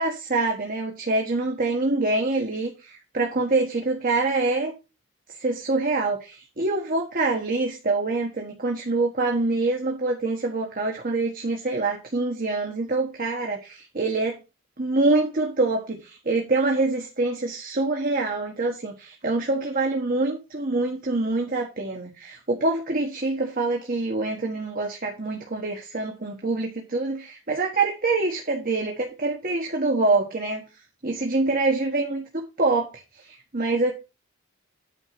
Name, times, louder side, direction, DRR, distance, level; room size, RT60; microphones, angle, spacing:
voice 1, 0.0-4.7 5.3-6.2 6.6-14.4 14.8-30.7 31.0-33.9, right 3 dB, 45° right, 1 dB, 1.4 m, -25 dB
9.1 x 4.4 x 5.8 m, 0.28 s
head